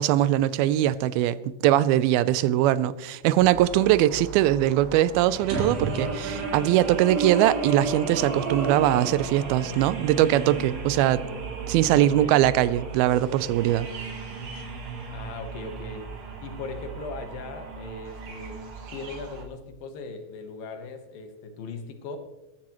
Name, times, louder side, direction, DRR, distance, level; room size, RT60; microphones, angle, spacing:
voice 1, 0.0-1.4 1.6-11.2 11.7-13.9, right 13 dB, 90° right, 2.5 m, -21 dB
sound 1, 3.4-19.4, right 4 dB, 70° right, 4.0 m, -34 dB
voice 2, 11.9-12.3 15.1-16.0 16.4-18.6 18.9-22.2, left 4 dB, 75° left, 3.1 m, -38 dB
22.0 x 11.5 x 3.0 m
omnidirectional pair, 4.3 m